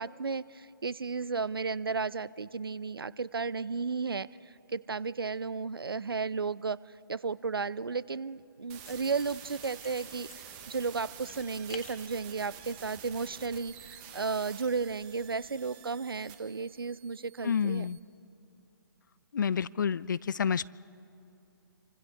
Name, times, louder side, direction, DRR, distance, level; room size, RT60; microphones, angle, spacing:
voice 1, 0.0-4.3 4.7-6.8 7.1-17.9, right 4 dB, 75° right, 20 dB, 0.5 m, -34 dB
sound 1, 8.7-18.0, right 9 dB, 25° right, 1.4 m, -49 dB
sound 2, 8.8-15.7, left 6 dB, 40° left, 2.0 m, -54 dB
voice 2, 17.4-18.0 19.3-20.7, left 7 dB, 55° left, 21 dB, 0.4 m, -29 dB
29.0 x 25.0 x 3.6 m, 2.8 s
figure-of-eight pair, 135°, 12 cm